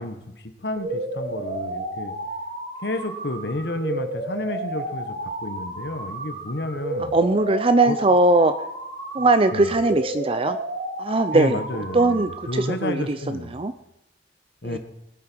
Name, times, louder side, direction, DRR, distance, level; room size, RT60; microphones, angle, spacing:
voice 1, 0.0-2.1 2.8-7.2 7.8-8.0 9.2-9.3 9.5-9.7 11.3-13.6 14.6-14.8, left 2 dB, 65° left, 8 dB, 1.5 m, -31 dB
sound 1, 0.8-12.8, right 1 dB, 70° right, 3.2 m, -32 dB
voice 2, 7.0-8.5 9.1-10.6 11.0-11.6 11.9-13.7 14.6-14.8, right 2 dB, 30° right, 10 dB, 0.6 m, -20 dB
19.0 x 8.8 x 4.7 m, 0.89 s
head